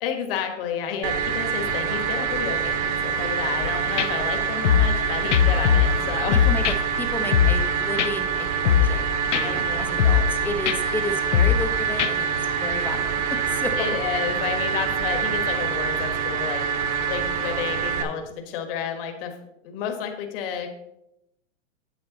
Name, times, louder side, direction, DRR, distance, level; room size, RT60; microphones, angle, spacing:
voice 1, 0.0-6.8 9.4-10.0 13.8-16.6 17.1-19.4 19.6-20.8, left 7 dB, 50° left, 5 dB, 1.5 m, -31 dB
sound 1, 1.0-18.0, right 7 dB, 60° right, 1.6 m, -26 dB
sound 2, 3.6-3.7 4.0-4.1 4.6-5.0 5.3-6.0 6.3-6.8 7.3-7.7 8.0-8.1 8.6-9.0 9.3-9.4 10.0-10.4 10.7-10.8 11.3-11.7 12.0-12.1, left 9 dB, 80° left, 0.7 m, -20 dB
voice 2, 6.5-13.2 13.5-13.9, left 2 dB, 5° left, 7 dB, 0.6 m, -33 dB
9.0 x 7.8 x 4.0 m, 0.85 s
hypercardioid pair, 140°, 36 cm